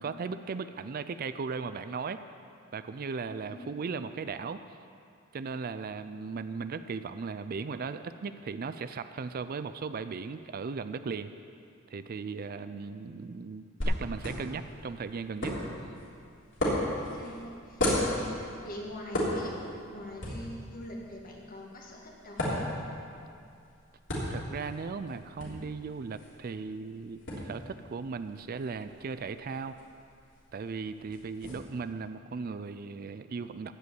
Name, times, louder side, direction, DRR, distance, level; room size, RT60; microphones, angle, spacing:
voice 1, 0.0-2.2 2.7-4.6 5.3-11.3 11.9-15.6 24.3-29.8 30.5-33.7, right 5 dB, 45° right, 11 dB, 0.4 m, -37 dB
voice 2, 3.3-3.7 17.1-22.8, left 1 dB, 45° left, -1 dB, 1.9 m, -44 dB
sound 1, 13.8-31.5, left 1 dB, 65° left, 3.3 m, -36 dB
15.0 x 5.3 x 9.3 m, 2.4 s
head